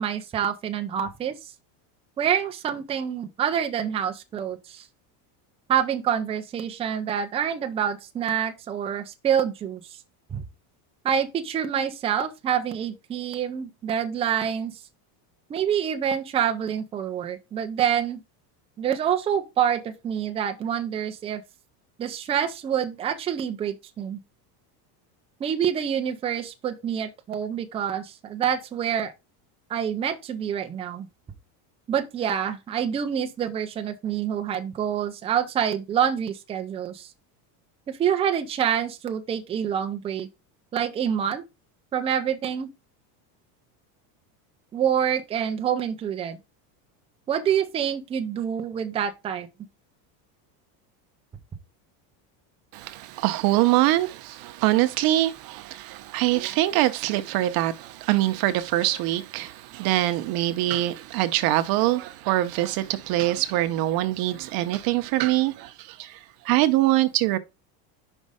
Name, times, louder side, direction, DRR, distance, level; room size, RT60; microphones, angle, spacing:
voice 1, 0.0-1.3 2.2-4.9 5.7-9.8 10.3-10.4 11.0-14.7 15.5-18.2 18.8-21.4 22.0-24.2 25.4-29.1 29.7-31.1 31.9-37.1 37.9-40.3 40.7-41.4 41.9-42.7 44.7-46.4 47.3-49.5, right 9 dB, 15° right, 0.4 m, -27 dB
voice 2, 52.7-66.2 66.4-67.4, right 16 dB, 50° right, 0.7 m, -24 dB
5.4 x 5.0 x 4.8 m
cardioid pair, 155°, 48 cm